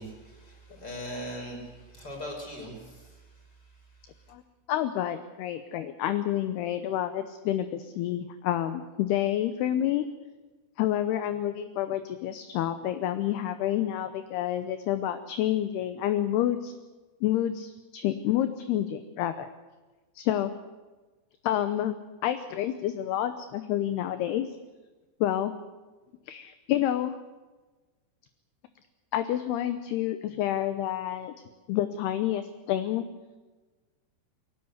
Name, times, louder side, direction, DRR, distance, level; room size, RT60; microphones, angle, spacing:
voice 1, 0.0-3.2, equal, 20° left, 2 dB, 5.9 m, -40 dB
voice 2, 4.7-10.1 10.8-16.7 17.2-19.5 20.2-20.5 21.4-22.0 22.2-24.5 25.2-25.5 26.3-27.2 29.1-31.3 31.7-33.0, left 12 dB, 75° left, 10 dB, 2.6 m, -28 dB
22.5 x 18.5 x 8.1 m, 1.3 s
omnidirectional pair, 5.3 m